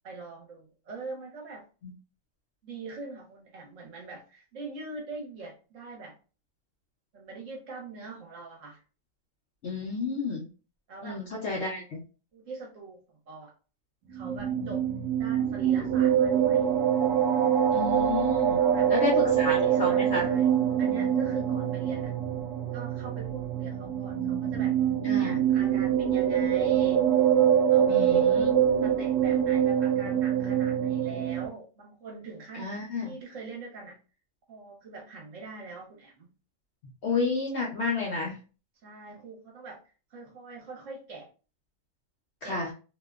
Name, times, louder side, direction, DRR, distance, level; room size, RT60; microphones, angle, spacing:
voice 1, 0.0-1.6 2.6-6.2 7.1-8.8 10.9-11.9 12.3-13.5 14.1-14.8 15.2-16.7 18.6-20.5 20.8-22.1 22.7-24.7 25.1-27.0 27.7-28.3 28.8-32.7 33.0-34.0 34.5-36.3 38.8-39.8 40.1-41.3 42.4-42.6, right 3 dB, 60° right, -1 dB, 1.1 m, -43 dB
voice 2, 9.6-10.4 11.0-12.0 17.7-18.6 18.9-20.3 25.0-25.4 27.9-28.5 32.5-33.2 37.0-38.4 42.4-42.7, left 3 dB, 60° left, -2 dB, 0.7 m, -31 dB
sound 1, 14.1-31.5, right 9 dB, 85° right, 1.1 m, -25 dB
2.8 x 2.1 x 2.3 m, 0.35 s
omnidirectional pair, 1.7 m